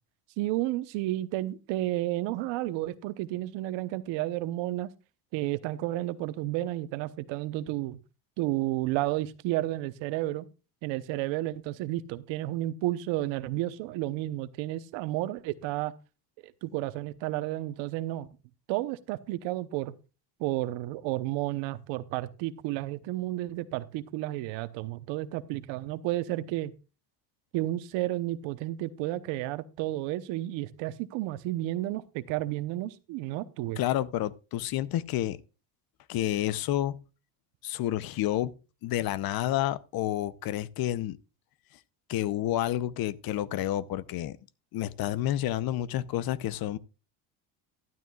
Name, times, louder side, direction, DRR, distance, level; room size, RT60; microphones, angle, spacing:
voice 1, 0.4-4.9 5.3-8.0 8.4-10.5 10.8-15.9 16.4-18.3 18.7-19.9 20.4-26.7 27.5-33.8, right 16 dB, 75° right, 1.0 m, -32 dB
voice 2, 33.8-35.4 36.1-37.0 37.6-38.6 38.8-41.2 42.1-44.4 44.7-46.8, left 13 dB, 50° left, 0.7 m, -29 dB
12.0 x 12.0 x 2.4 m
supercardioid pair, 110°, 45 cm